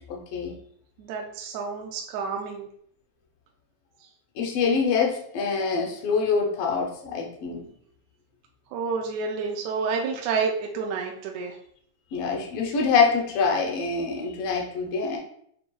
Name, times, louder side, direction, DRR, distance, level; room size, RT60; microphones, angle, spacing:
voice 1, 0.1-0.5 4.4-7.7 12.1-15.2, left 5 dB, 85° left, -1 dB, 1.2 m, -25 dB
voice 2, 1.0-2.7 8.7-11.5, right 5 dB, 80° right, 0 dB, 1.7 m, -29 dB
7.5 x 2.6 x 2.3 m, 0.67 s
omnidirectional pair, 3.5 m